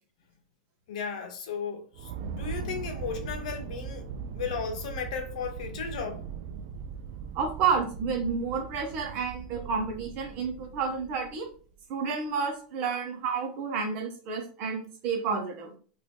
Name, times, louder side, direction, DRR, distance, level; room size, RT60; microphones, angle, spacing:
voice 1, 0.9-4.1 4.3-6.2, left 6 dB, 75° left, 0.9 m, -35 dB
sound 1, 1.9-11.6, right 6 dB, 60° right, 0.4 m, -39 dB
voice 2, 7.3-11.5 11.9-15.7, right 5 dB, 45° right, 0.8 m, -30 dB
2.9 x 2.6 x 3.4 m
supercardioid pair, 150°, 4 cm